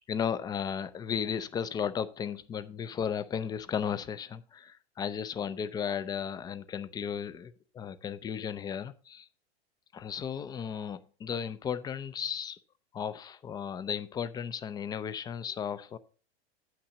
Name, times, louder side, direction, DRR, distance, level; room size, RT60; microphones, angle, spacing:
voice 1, 0.1-9.3 9.9-12.6 12.9-16.0, left 7 dB, 10° left, 14 dB, 0.4 m, -35 dB
8.5 x 5.9 x 5.4 m, 0.39 s
hypercardioid pair, 110°, 34 cm